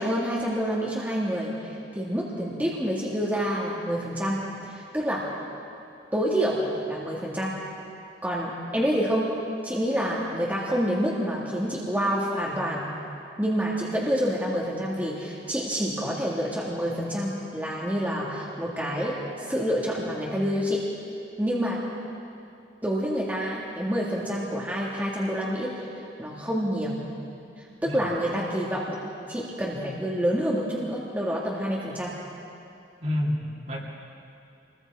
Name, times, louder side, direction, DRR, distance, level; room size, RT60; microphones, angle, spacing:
voice 1, 0.0-5.3 6.1-7.7 8.2-9.3 9.6-12.9 13.4-20.9 21.4-21.8 22.8-25.8 26.2-27.0 27.6-29.0 29.3-32.2, equal, 10° right, -5 dB, 2.0 m, -28 dB
voice 2, 33.0-33.8, left 1 dB, 40° right, -3 dB, 3.2 m, -28 dB
27.0 x 21.0 x 4.7 m, 2.6 s
head